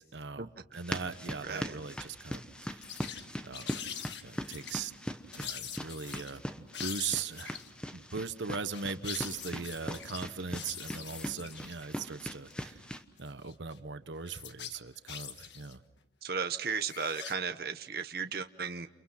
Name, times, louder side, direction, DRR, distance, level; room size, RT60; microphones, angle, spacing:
voice 1, 0.0-3.0 3.4-3.8 4.2-4.9 5.4-7.6 7.9-12.8 13.2-15.8, right 5 dB, 90° right, 11 dB, 1.1 m, -39 dB
sound 1, 0.7-13.0, equal, 5° left, 1.1 m, -41 dB
voice 2, 1.4-1.7 16.2-18.9, right 5 dB, 55° right, 8 dB, 0.9 m, -35 dB
sound 2, 1.7-1.9 2.3-2.4 2.8-3.3 3.5-4.8 5.3-6.4 6.7-7.7 8.5-11.8 12.5-12.6 13.2-13.8 14.2-15.7 16.6-17.3, left 8 dB, 80° left, 1.5 m, -44 dB
29.5 x 29.5 x 5.9 m, 0.93 s
head